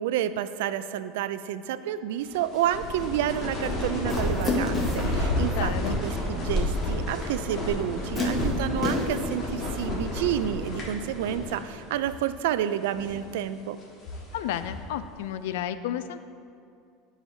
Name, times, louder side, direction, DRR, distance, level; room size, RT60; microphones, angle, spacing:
voice 1, 0.0-5.7 6.0-13.8, right 11 dB, 85° right, 13 dB, 0.3 m, -29 dB
sound 1, 2.3-11.8 12.0-12.2 12.8-13.2 13.8-14.9, left 1 dB, 35° left, 1.6 m, -30 dB
sound 2, 4.1-5.2 7.0-7.1 8.1-9.3, left 2 dB, 20° left, 1.2 m, -29 dB
voice 2, 5.5-6.0 14.3-16.2, left 10 dB, 85° left, 12 dB, 0.3 m, -32 dB
13.5 x 4.9 x 2.7 m, 2.4 s
supercardioid pair, 140°, 0 cm